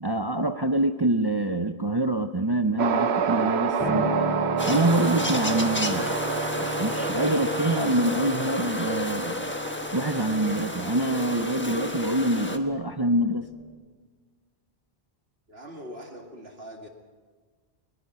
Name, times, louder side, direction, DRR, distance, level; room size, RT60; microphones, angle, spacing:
voice 1, 0.0-4.1 4.6-6.1 6.8-9.5 9.9-13.5, right 1 dB, 25° right, 8 dB, 0.6 m, -25 dB
sound 1, 2.8-11.3, right 7 dB, 85° right, 1.1 m, -30 dB
Piano, 3.8-13.7, right 1 dB, 10° right, 4.8 m, -35 dB
sound 2, 4.6-12.6, left 1 dB, 10° left, 1.2 m, -31 dB
voice 2, 15.5-16.9, equal, 70° right, 3 dB, 2.6 m, -42 dB
22.0 x 21.5 x 5.7 m, 1.5 s
omnidirectional pair, 1.1 m